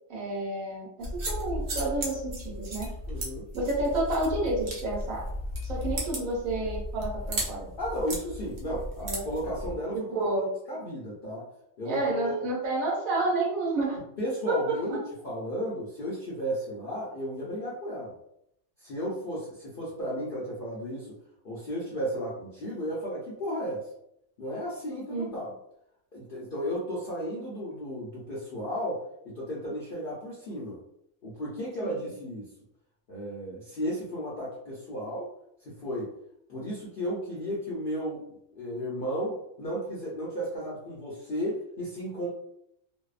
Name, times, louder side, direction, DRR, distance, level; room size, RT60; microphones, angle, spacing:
voice 1, 0.1-2.9 3.5-5.2 5.6-7.7 9.0-9.2 10.1-10.5 11.8-14.0 14.5-14.8 25.1-25.4 31.8-32.0, right 2 dB, 80° right, -3 dB, 1.1 m, -30 dB
sound 1, 1.0-9.8, equal, 55° right, 0.7 m, -35 dB
voice 2, 3.1-3.5 7.8-10.2 10.7-11.5 11.8-12.5 14.2-18.1 18.8-21.1 21.4-23.9 24.4-25.5 26.1-29.0 29.2-30.8 31.2-32.5 33.1-35.3 35.6-36.1 36.5-38.2 38.5-42.3, equal, 55° left, -7 dB, 0.6 m, -34 dB
2.6 x 2.0 x 2.3 m, 0.76 s
omnidirectional pair, 1.4 m